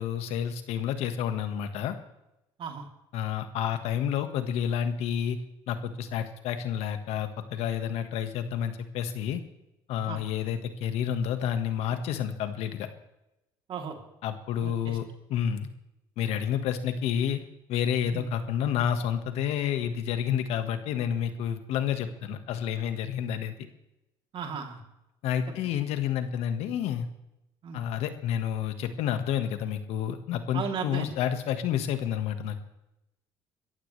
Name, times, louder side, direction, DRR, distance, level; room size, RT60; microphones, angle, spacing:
voice 1, 0.0-1.9 3.1-5.4 5.7-9.4 9.9-12.9 14.2-15.7 16.2-17.4 17.7-23.5 25.2-27.1 27.7-32.6, left 9 dB, 75° left, 9 dB, 1.6 m, -29 dB
voice 2, 13.7-14.0 14.6-15.0 18.1-18.2 24.3-24.8 27.6-27.8 30.5-31.1, right 6 dB, 55° right, 3 dB, 3.2 m, -35 dB
22.5 x 14.5 x 3.3 m, 0.90 s
supercardioid pair, 85°, 11 cm